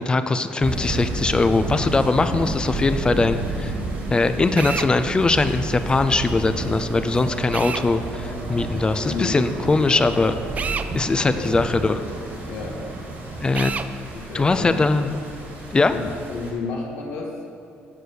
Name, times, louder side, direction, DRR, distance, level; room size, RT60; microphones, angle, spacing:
voice 1, 0.0-3.7 4.1-10.3 10.9-12.0 13.4-13.7 14.3-15.2 15.7-15.9, left 3 dB, 20° left, 10 dB, 0.5 m, -21 dB
sound 1, 0.6-16.5, right 2 dB, 55° right, 2.1 m, -31 dB
Drill, 4.6-4.9 7.5-7.9 10.5-10.9 13.5-13.9, right 6 dB, 35° right, 0.4 m, -28 dB
voice 2, 9.0-10.0 11.1-11.6 12.5-12.8 14.1-14.8 15.9-17.5, left 4 dB, 85° left, -1 dB, 1.6 m, -32 dB
9.1 x 4.6 x 6.6 m, 2.4 s
cardioid pair, 95°, 4 cm